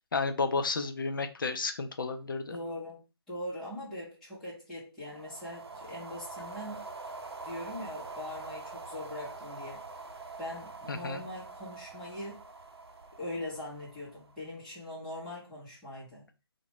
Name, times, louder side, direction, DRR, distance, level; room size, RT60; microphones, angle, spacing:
voice 1, 0.1-2.6 10.9-11.2, left 4 dB, 50° left, 0.4 m, -32 dB
voice 2, 2.5-3.0 3.3-6.8 7.4-9.8 10.4-12.4 13.2-16.2, left 1 dB, 5° left, 0.7 m, -41 dB
sound 1, 5.1-14.5, right 3 dB, 70° right, 0.6 m, -45 dB
2.9 x 2.1 x 3.0 m
figure-of-eight pair, 155°, 14 cm